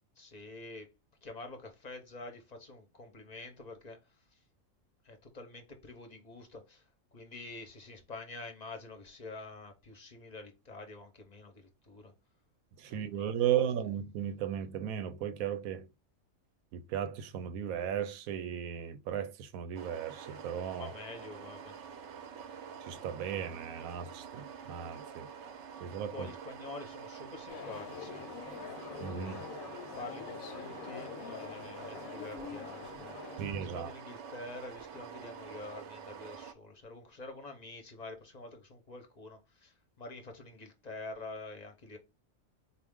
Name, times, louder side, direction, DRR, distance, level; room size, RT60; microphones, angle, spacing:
voice 1, 0.2-0.9 1.2-4.4 5.0-12.1 12.8-13.6 20.7-21.8 26.1-28.2 29.9-33.4 33.7-42.0, left 2 dB, 40° left, 0.6 m, -47 dB
voice 2, 12.8-15.9 16.7-20.9 22.8-25.3 25.8-26.3 29.0-29.4 33.4-33.9, right 9 dB, 85° right, 1.0 m, -35 dB
sound 1, 19.7-36.5, right 7 dB, 65° right, 0.8 m, -47 dB
sound 2, 27.5-33.4, left 8 dB, 85° left, 1.0 m, -45 dB
4.2 x 2.4 x 3.5 m
omnidirectional pair, 1.4 m